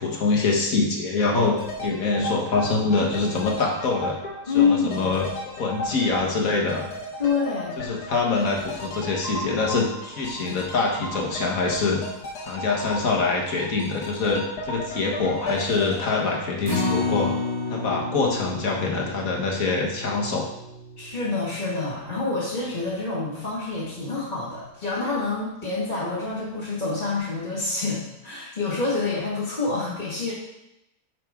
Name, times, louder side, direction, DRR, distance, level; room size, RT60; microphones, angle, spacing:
voice 1, 0.0-4.2 4.5-6.8 7.8-12.0 12.4-17.3 17.7-20.5, left 3 dB, 65° left, 0 dB, 1.7 m, -25 dB
sound 1, 1.6-17.5 17.8-17.9, left 1 dB, 85° left, 1.7 m, -35 dB
voice 2, 4.5-5.1 7.2-7.9 21.0-30.3, left 4 dB, 30° left, -9 dB, 1.8 m, -27 dB
Acoustic guitar, 16.6-23.0 23.4-23.5 23.9-24.0, left 3 dB, 45° right, 3.3 m, -31 dB
9.1 x 5.8 x 3.6 m, 0.87 s
omnidirectional pair, 1.6 m